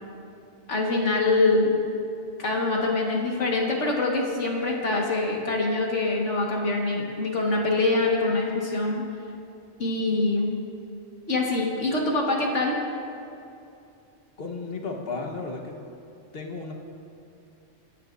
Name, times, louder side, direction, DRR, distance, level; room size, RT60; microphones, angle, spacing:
voice 1, 0.7-1.8 2.4-9.0 9.8-10.5 11.3-12.8, left 2 dB, 65° left, -1 dB, 2.0 m, -24 dB
voice 2, 14.4-15.8 16.3-16.7, left 3 dB, 50° left, 1 dB, 1.5 m, -34 dB
24.5 x 10.0 x 2.7 m, 2.6 s
omnidirectional pair, 1.3 m